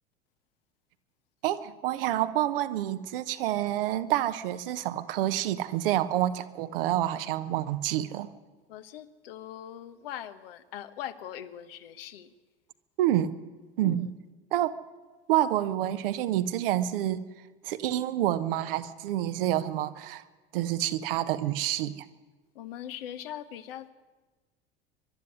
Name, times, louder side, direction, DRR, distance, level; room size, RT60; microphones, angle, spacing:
voice 1, 1.4-8.3 13.0-13.3 13.8-14.1 14.5-14.8 15.3-17.2 17.6-20.2 20.5-22.1, right 13 dB, 60° right, 1.1 m, -28 dB
voice 2, 8.7-12.3 13.8-14.1 22.5-23.9, left 11 dB, 65° left, 1.3 m, -41 dB
22.5 x 12.0 x 9.7 m
figure-of-eight pair, 75°, 31 cm